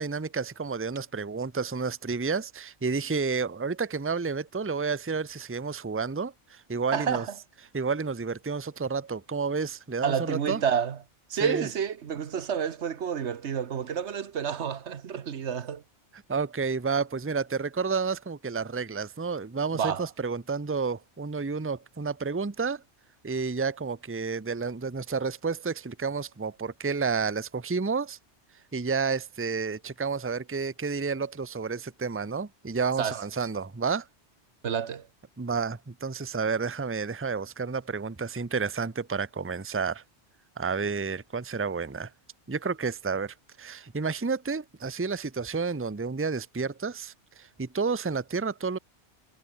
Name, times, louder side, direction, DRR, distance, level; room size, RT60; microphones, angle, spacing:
voice 1, 0.0-7.2 7.7-10.6 11.4-11.7 16.3-22.8 23.2-28.2 28.7-34.1 35.4-40.0 40.6-42.1 42.5-48.8, right 5 dB, 15° right, 0.7 m, -30 dB
voice 2, 6.9-7.4 10.0-11.0 11.3-15.8 19.7-20.1 33.0-33.2 34.6-35.1, right 8 dB, 80° right, 1.3 m, -29 dB
omnidirectional pair, 1.2 m